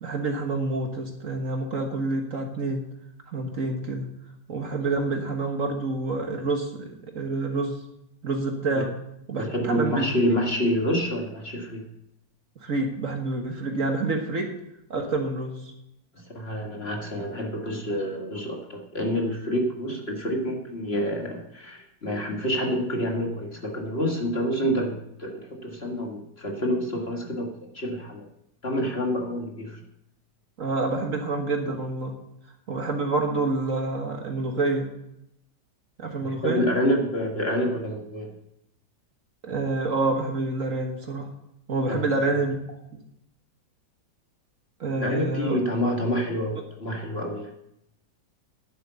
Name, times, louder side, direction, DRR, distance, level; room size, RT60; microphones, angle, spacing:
voice 1, 0.0-2.8 3.3-4.1 4.5-7.8 8.2-8.9 9.3-10.0 12.6-14.5 14.9-15.7 30.6-32.1 32.7-34.9 36.0-36.7 39.4-41.3 41.7-42.6 42.9-43.0 44.8-45.6, right 3 dB, 50° right, 3 dB, 1.7 m, -27 dB
voice 2, 9.3-11.8 16.1-28.3 28.6-29.8 36.2-38.3 41.9-42.1 45.0-47.5, equal, 35° left, 1 dB, 1.9 m, -28 dB
11.0 x 8.2 x 6.9 m, 0.78 s
omnidirectional pair, 1.9 m